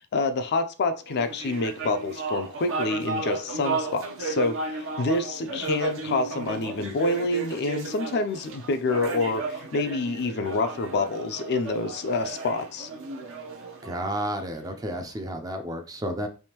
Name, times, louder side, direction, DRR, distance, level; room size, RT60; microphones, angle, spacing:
voice 1, 0.1-12.9, left 3 dB, 50° left, 8 dB, 0.4 m, -27 dB
sound 1, 1.1-14.7, right 3 dB, 60° right, 0.7 m, -34 dB
voice 2, 13.8-16.3, right 1 dB, 15° right, 5 dB, 0.4 m, -31 dB
3.4 x 2.5 x 2.8 m, 0.35 s
head